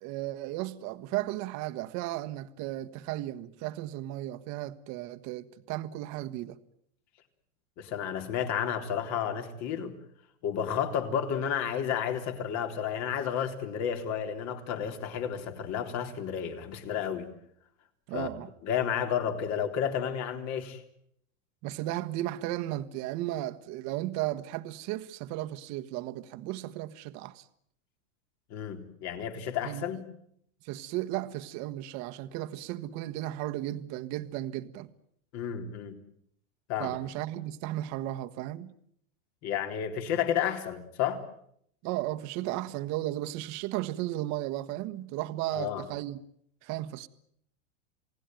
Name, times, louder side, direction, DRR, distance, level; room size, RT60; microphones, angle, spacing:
voice 1, 0.0-6.6 18.1-18.5 21.6-27.5 29.6-29.9 30.6-34.9 36.8-38.7 41.8-46.2 46.6-47.1, right 15 dB, 45° right, 1.5 m, -35 dB
voice 2, 7.8-9.9 10.4-17.3 18.1-18.3 18.6-20.8 28.5-30.1 35.3-35.9 36.7-37.0 39.4-41.2 45.5-45.8, left 8 dB, 45° left, 3.8 m, -31 dB
28.5 x 18.5 x 9.2 m
supercardioid pair, 135°, 38 cm